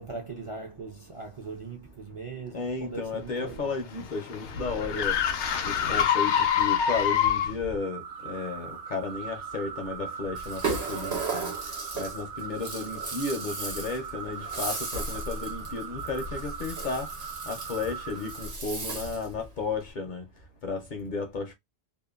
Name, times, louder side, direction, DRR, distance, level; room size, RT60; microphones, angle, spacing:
voice 1, 0.0-3.7, right 4 dB, 40° right, 0.5 m, -40 dB
voice 2, 2.5-5.2 5.6-11.5 11.9-17.1 17.5-20.2 20.6-21.5, left 4 dB, 55° left, 0.6 m, -33 dB
sound 1, 3.2-7.7, left 8 dB, 90° left, 0.9 m, -26 dB
sound 2, 7.7-18.5, right 6 dB, 90° right, 1.0 m, -40 dB
Rattle (instrument), 10.3-19.3, right 3 dB, 65° right, 1.2 m, -36 dB
2.7 x 2.1 x 2.3 m
omnidirectional pair, 1.1 m